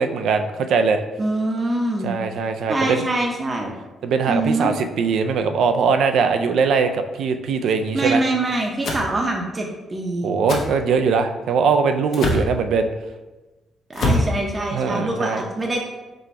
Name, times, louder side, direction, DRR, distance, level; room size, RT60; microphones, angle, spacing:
voice 1, 0.0-1.0 2.0-3.0 4.0-8.2 10.2-12.9 14.7-15.4, right 5 dB, 75° right, 7 dB, 0.3 m, -21 dB
voice 2, 1.2-2.2 2.7-3.7 4.3-4.7 7.9-10.3 13.9-15.8, right 2 dB, 30° right, 0 dB, 0.6 m, -24 dB
sound 1, 8.8-9.1 10.5-10.7 12.1-12.5 13.9-14.3, left 1 dB, 65° left, 0.7 m, -22 dB
4.1 x 2.2 x 4.6 m, 1.1 s
cardioid pair, 85°, 0 cm